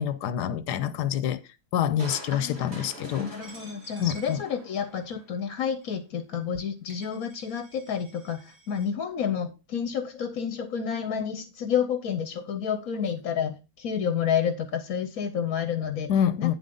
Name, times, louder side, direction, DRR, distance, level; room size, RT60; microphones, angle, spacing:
voice 1, 0.0-1.4 1.7-3.3 4.0-4.4 16.1-16.5, left 9 dB, 85° left, 1.4 m, -26 dB
Crushing, 2.0-5.4 5.8-5.9, right 1 dB, 40° right, 2.6 m, -45 dB
voice 2, 2.3-2.9 3.2-16.1 16.4-16.5, left 7 dB, 60° left, 1.3 m, -30 dB
Coin (dropping), 3.4-5.2 5.8-5.9 6.6-6.7 6.9-8.9, right 3 dB, 70° right, 4.1 m, -52 dB
8.9 x 7.8 x 3.8 m
omnidirectional pair, 1.7 m